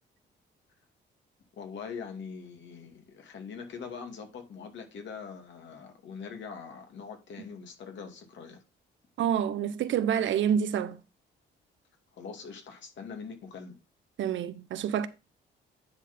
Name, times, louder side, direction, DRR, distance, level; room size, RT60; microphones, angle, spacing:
voice 1, 1.5-8.6 12.1-13.8, left 6 dB, 65° left, 2.5 m, -43 dB
voice 2, 9.2-11.0 14.2-15.1, right 8 dB, 70° right, 0.9 m, -27 dB
9.8 x 4.2 x 5.3 m
cardioid pair, 90°, 20 cm